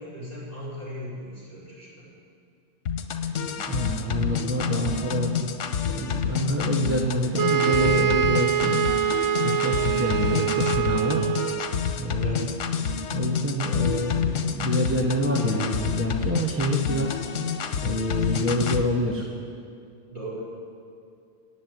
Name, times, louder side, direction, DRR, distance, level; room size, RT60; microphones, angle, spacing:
voice 1, 0.0-2.1 12.2-12.5 20.1-20.4, equal, 30° right, -7 dB, 4.9 m, -37 dB
sound 1, 2.9-18.8, left 7 dB, 90° left, 1.2 m, -28 dB
voice 2, 3.6-5.3 5.8-8.9 9.4-11.7 12.0-12.5 13.1-17.2 17.8-19.2, equal, 10° right, -1 dB, 0.9 m, -27 dB
sound 2, 7.4-11.8, right 10 dB, 75° right, 0.9 m, -24 dB
15.0 x 7.3 x 9.3 m, 2.4 s
omnidirectional pair, 1.2 m